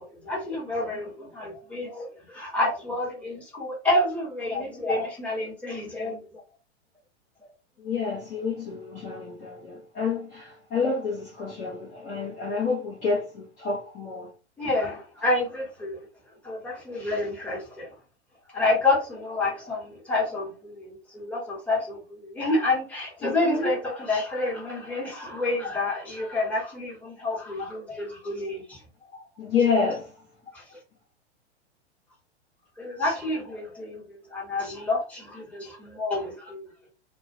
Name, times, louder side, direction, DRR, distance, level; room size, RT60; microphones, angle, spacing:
voice 1, 0.0-6.2 7.4-7.5 14.6-16.0 16.4-17.9 18.5-28.8 29.1-29.2 30.5-30.6 32.8-36.7, left 2 dB, 5° left, 1.0 m, -29 dB
voice 2, 7.8-14.3 23.2-23.8 29.4-30.0, left 5 dB, 20° left, 0.6 m, -28 dB
2.2 x 2.1 x 2.6 m
figure-of-eight pair, 105°, 35 cm